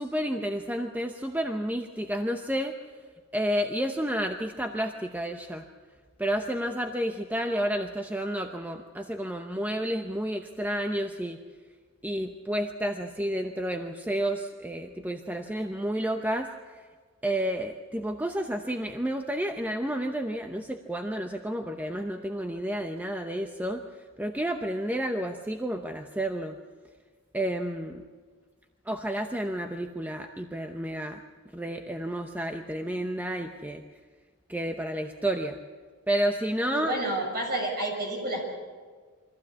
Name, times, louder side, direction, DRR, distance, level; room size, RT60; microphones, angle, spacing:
voice 1, 0.0-2.8 3.3-5.7 6.2-11.4 12.0-16.8 17.2-23.8 24.2-26.6 27.3-28.0 28.9-31.2 31.5-33.8 34.5-35.6 36.1-36.9, right 1 dB, 10° right, 4 dB, 0.8 m, -30 dB
voice 2, 36.7-38.4, right 1 dB, 50° right, 1 dB, 6.5 m, -30 dB
24.5 x 15.0 x 8.4 m, 1.5 s
head